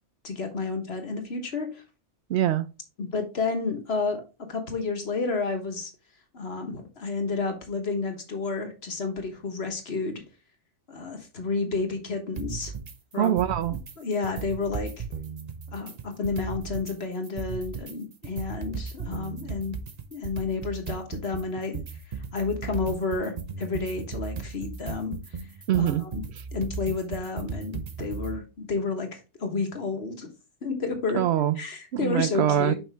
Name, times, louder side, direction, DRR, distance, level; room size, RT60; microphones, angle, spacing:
voice 1, 0.2-1.8 3.0-4.2 4.5-5.9 6.3-10.2 10.9-12.7 13.1-13.4 14.0-15.0 15.7-19.7 20.1-21.8 22.3-25.1 25.8-26.2 26.5-30.3 30.6-31.2 31.6-32.8, left 4 dB, 60° left, 1.6 m, -30 dB
voice 2, 2.3-2.7 13.2-13.8 25.7-26.0 31.1-31.6 31.9-32.7, right 11 dB, 70° right, 0.8 m, -24 dB
sound 1, 12.4-12.9 13.2-13.9 14.2-16.9 17.2-28.4, right 5 dB, 40° right, 0.7 m, -36 dB
5.8 x 5.4 x 3.4 m
omnidirectional pair, 1.2 m